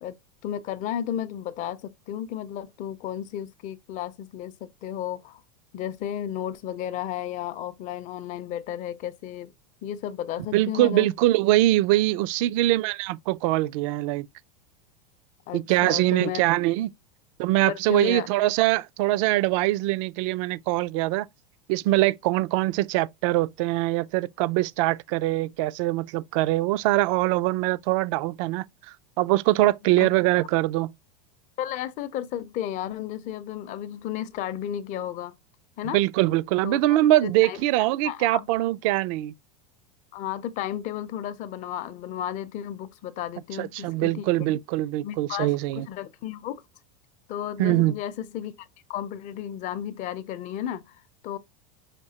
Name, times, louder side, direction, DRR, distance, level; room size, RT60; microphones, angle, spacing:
voice 1, 0.4-5.4 5.7-9.5 9.8-11.1 15.5-16.4 17.7-18.3 30.0-30.1 31.6-35.3 35.8-36.0 36.6-37.6 38.0-38.5 40.1-44.3 45.0-46.6 47.3-51.0 51.2-51.4, left 11 dB, 40° left, 0.6 m, -33 dB
voice 2, 10.5-14.3 15.5-16.9 17.4-21.3 21.7-28.6 29.2-30.9 35.9-39.3 43.6-45.9 47.6-47.9, right 17 dB, 55° right, 0.4 m, -23 dB
5.8 x 2.7 x 2.8 m
supercardioid pair, 130°, 20 cm